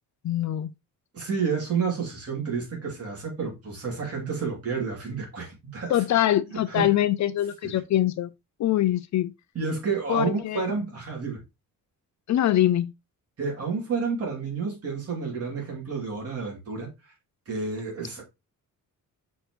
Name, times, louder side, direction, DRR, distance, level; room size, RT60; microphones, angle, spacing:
voice 1, 0.2-0.7 5.9-8.3 8.6-9.3 10.1-10.6 12.3-12.9, left 13 dB, 60° left, 0.5 m, -23 dB
voice 2, 1.1-6.0 6.7-6.9 9.5-11.4 13.4-16.9 17.5-18.2, right 5 dB, 45° right, 3.1 m, -30 dB
6.4 x 4.7 x 3.2 m
wide cardioid pair, 175°, 33 cm